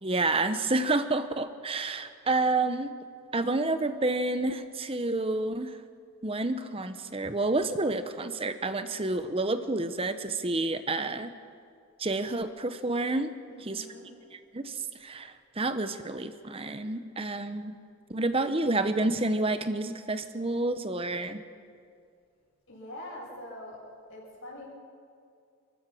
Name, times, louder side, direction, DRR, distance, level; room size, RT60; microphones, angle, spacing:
voice 1, 0.0-2.9 3.3-5.7 6.2-11.3 12.0-13.3 13.6-13.8 14.3-17.7 18.1-21.4, right 2 dB, 25° right, 10 dB, 0.9 m, -29 dB
voice 2, 13.5-14.1 22.7-23.8 24.1-24.7, left 1 dB, 60° left, -6 dB, 6.9 m, -43 dB
28.5 x 14.5 x 6.2 m, 2.3 s
head